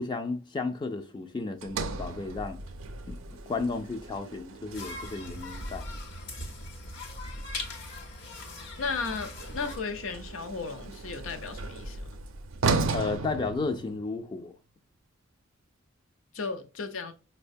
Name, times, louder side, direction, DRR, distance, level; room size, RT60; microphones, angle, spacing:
voice 1, 0.0-2.6 3.1-3.2 3.5-5.8 12.9-14.5, left 3 dB, 25° left, 0.3 m, -33 dB
Sliding door, 1.6-5.9 9.3-14.3, right 4 dB, 75° right, 0.4 m, -35 dB
sound 1, 4.7-9.8, left 1 dB, 60° left, 0.9 m, -39 dB
voice 2, 8.8-12.1 16.3-17.1, left 4 dB, 80° left, 0.6 m, -35 dB
4.8 x 2.1 x 2.6 m
head